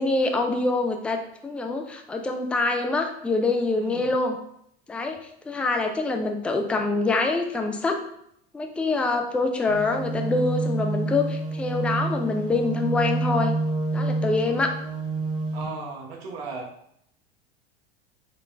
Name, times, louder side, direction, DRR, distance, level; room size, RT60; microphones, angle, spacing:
voice 1, 0.0-4.4 4.9-8.0 8.5-13.6 13.9-14.7, left 3 dB, 5° left, 4 dB, 0.3 m, -25 dB
voice 2, 3.8-4.1 15.5-16.7, right 4 dB, 75° right, -1 dB, 1.2 m, -36 dB
sound 1, 9.7-15.6, right 3 dB, 15° right, 1.3 m, -28 dB
3.9 x 2.4 x 3.2 m, 0.72 s
hypercardioid pair, 95°, 31 cm